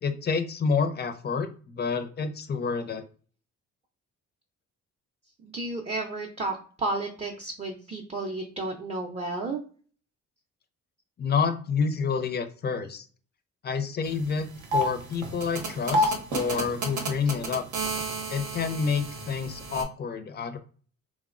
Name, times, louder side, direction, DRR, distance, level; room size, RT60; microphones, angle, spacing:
voice 1, 0.0-3.0 11.2-13.1 13.6-17.6 18.3-20.6, left 5 dB, 35° left, 9 dB, 0.4 m, -28 dB
voice 2, 5.4-9.6, right 2 dB, 20° right, 0 dB, 0.4 m, -32 dB
sound 1, 14.1-14.2 14.5-19.8, equal, 85° right, 0.7 m, -30 dB
3.0 x 2.0 x 2.4 m, 0.41 s
cardioid pair, 90°, 30 cm